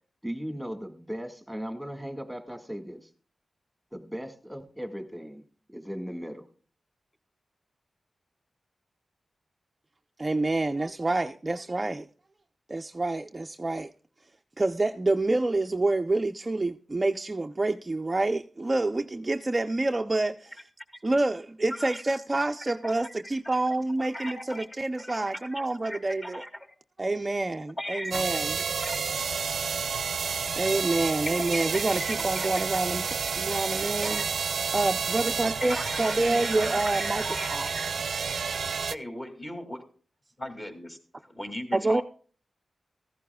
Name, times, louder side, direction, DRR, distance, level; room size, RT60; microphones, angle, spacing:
voice 1, 0.2-3.1 3.9-5.4 5.7-6.5, equal, ahead, 1.8 m, -37 dB
voice 2, 10.2-12.1 12.7-13.9 14.6-20.6 21.0-26.4 27.0-28.6 30.6-34.2 34.7-37.7 41.7-42.0, right 2 dB, 25° right, 0.5 m, -27 dB
voice 3, 21.7-22.0 22.8-23.1 23.4-23.6 24.0-24.7 25.0-25.2 25.5-26.5 27.8-28.2 28.8-29.0 31.3-32.6 34.0-34.2 35.7-37.9 38.9-39.8 40.4-42.0, left 1 dB, 20° left, 2.4 m, -38 dB
sound 1, 28.1-38.9, right 6 dB, 75° right, 0.5 m, -30 dB
16.0 x 15.0 x 2.3 m
wide cardioid pair, 125°, 0 cm